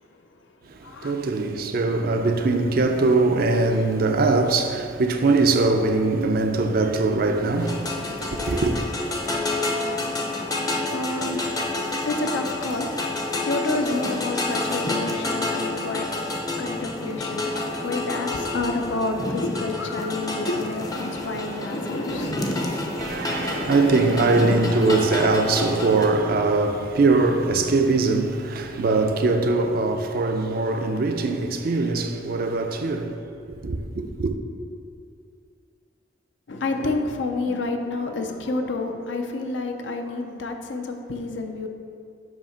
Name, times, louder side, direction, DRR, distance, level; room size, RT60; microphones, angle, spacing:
voice 1, 0.0-1.1 9.6-22.5 36.5-41.7, left 2 dB, 75° left, 0.6 m, -30 dB
voice 2, 0.7-8.8 23.0-33.2 33.5-34.3, right 3 dB, 55° right, 0.4 m, -22 dB
sound 1, 7.6-26.1, left 2 dB, 20° left, 0.5 m, -28 dB
7.3 x 2.8 x 5.7 m
head